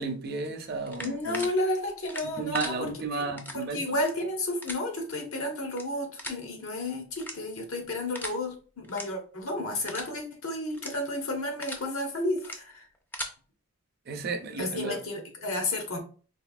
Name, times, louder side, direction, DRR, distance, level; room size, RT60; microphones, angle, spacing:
voice 1, 0.0-1.4 2.2-3.8 14.1-15.0, right 3 dB, 45° right, 0.5 m, -33 dB
sound 1, 0.9-1.5 2.0-2.7 3.4-3.6 3.9-4.1 4.6-4.8 5.7-5.8 6.2-6.4 7.2-7.6 8.1-8.4 8.8-9.0 9.4-9.5 9.9-10.1 10.7-10.9 11.4-11.8 12.4-12.6 12.9-13.3, left 1 dB, 10° left, 0.4 m, -37 dB
voice 2, 1.0-12.9 14.6-16.0, left 1 dB, 80° left, 1.0 m, -32 dB
4.1 x 2.6 x 2.4 m
head